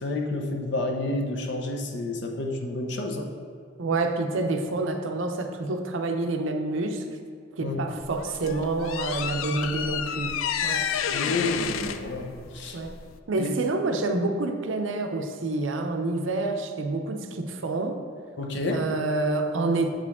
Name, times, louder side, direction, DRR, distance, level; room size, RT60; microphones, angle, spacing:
voice 1, 0.0-3.3 7.6-7.8 11.1-12.8 13.4-13.5 18.4-18.8, left 2 dB, 55° left, 1 dB, 0.7 m, -30 dB
voice 2, 3.8-7.1 7.5-10.9 12.7-13.0 13.3-18.0 18.7-19.9, right 2 dB, 70° right, 5 dB, 0.6 m, -28 dB
sound 1, 8.0-13.2, left 8 dB, 85° left, 0.3 m, -30 dB
7.3 x 4.9 x 3.5 m, 2.2 s
head